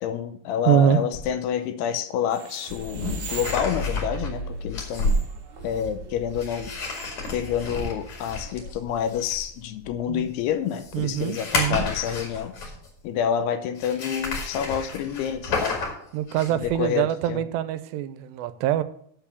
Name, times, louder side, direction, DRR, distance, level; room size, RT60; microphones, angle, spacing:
voice 1, 0.0-5.2 5.6-6.7 7.3-12.7 13.0-15.8 16.5-17.4, left 9 dB, 80° left, 10 dB, 2.6 m, -28 dB
voice 2, 0.7-1.0 10.1-10.3 10.9-11.9 16.1-18.8, right 10 dB, 85° right, 13 dB, 2.8 m, -24 dB
sound 1, 1.1-1.3 2.7-13.0 13.8-16.7, left 2 dB, 50° left, 2.9 m, -31 dB
sound 2, 2.2-8.7, right 6 dB, 60° right, 2.3 m, -44 dB
7.7 x 7.0 x 6.9 m, 0.64 s
omnidirectional pair, 4.9 m